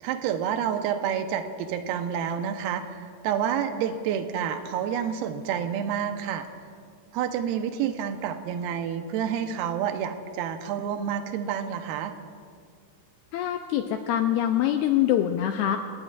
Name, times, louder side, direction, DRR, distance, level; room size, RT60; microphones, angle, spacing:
voice 1, 0.0-6.5 7.1-12.1, right 8 dB, 75° right, 6 dB, 2.5 m, -29 dB
voice 2, 13.3-15.8, left 11 dB, 85° left, 5 dB, 2.3 m, -24 dB
30.0 x 18.5 x 2.5 m, 2.2 s
omnidirectional pair, 5.2 m